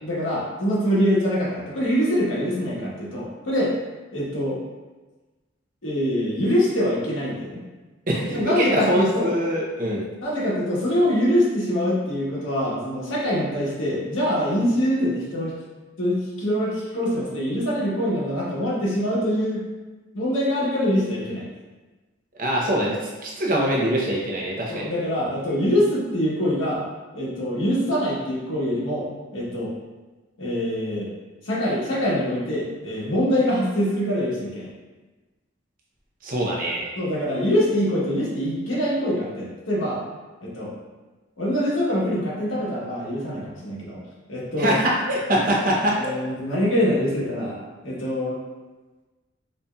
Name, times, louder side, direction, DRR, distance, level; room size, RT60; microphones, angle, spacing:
voice 1, 0.0-3.7 4.1-4.6 5.8-7.6 8.3-9.3 10.2-15.5 16.0-19.6 20.1-21.5 24.7-26.8 27.1-29.1 29.3-29.7 30.4-31.1 31.4-34.7 37.0-40.0 40.4-40.7 41.4-44.0 44.3-44.8 45.9-48.4, equal, 90° left, -5 dB, 1.1 m, -24 dB
voice 2, 8.1-10.0 22.4-24.9 36.2-36.9 44.6-46.1, equal, 45° right, -3 dB, 0.7 m, -23 dB
5.1 x 2.7 x 2.3 m, 1.2 s
head